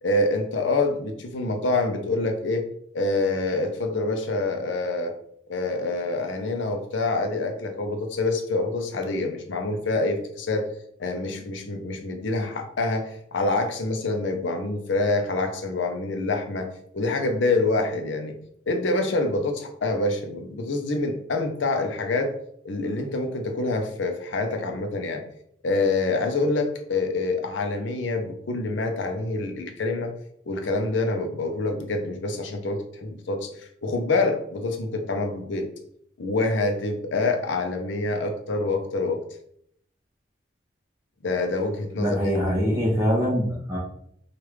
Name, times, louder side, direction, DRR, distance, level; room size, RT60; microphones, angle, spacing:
voice 1, 0.0-2.6 2.9-5.1 5.5-10.7 11.0-16.7 16.9-18.4 18.7-22.3 22.6-25.2 25.6-30.1 30.5-35.7 36.2-39.2 41.2-42.2, left 2 dB, 90° left, 5 dB, 0.6 m, -26 dB
voice 2, 42.0-43.8, equal, 15° right, -6 dB, 0.6 m, -23 dB
3.2 x 2.4 x 3.1 m, 0.70 s
head